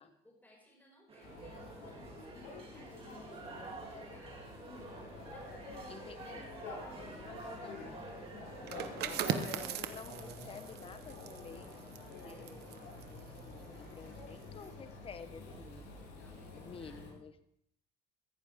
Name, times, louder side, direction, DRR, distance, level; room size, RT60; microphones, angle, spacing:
voice 1, 0.0-3.5 4.1-4.5 5.3-8.0 13.9-14.2 16.1-17.1, left 1 dB, 10° left, -1 dB, 5.7 m, -62 dB
sound 1, 1.1-9.5, right 4 dB, 35° right, 3.7 m, -50 dB
sound 2, 1.2-17.1, left 2 dB, 85° left, 7.3 m, -48 dB
voice 2, 5.9-6.5 7.2-7.8 8.9-15.9 16.5-17.3, left 6 dB, 35° left, 10 dB, 1.0 m, -51 dB
sound 3, 8.6-14.1 14.4-14.7, right 10 dB, 75° right, 1.2 m, -40 dB
16.0 x 14.5 x 3.6 m, 0.73 s
cardioid pair, 110°, 17 cm